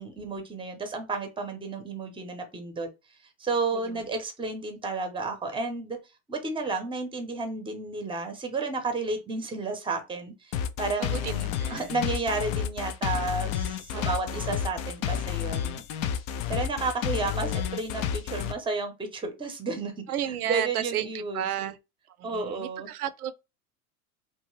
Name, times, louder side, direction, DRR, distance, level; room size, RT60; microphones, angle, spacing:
voice 1, 0.0-2.9 3.4-6.0 6.3-15.8 16.5-20.1 20.5-21.7 22.2-22.9, right 3 dB, 10° right, 0.7 m, -32 dB
sound 1, 10.5-18.5, left 9 dB, 40° left, 0.4 m, -30 dB
voice 2, 11.0-11.9 13.9-14.6 17.3-17.8 20.1-21.8 22.1-23.3, right 10 dB, 90° right, 0.6 m, -34 dB
2.9 x 2.2 x 3.1 m
hypercardioid pair, 105°, 43 cm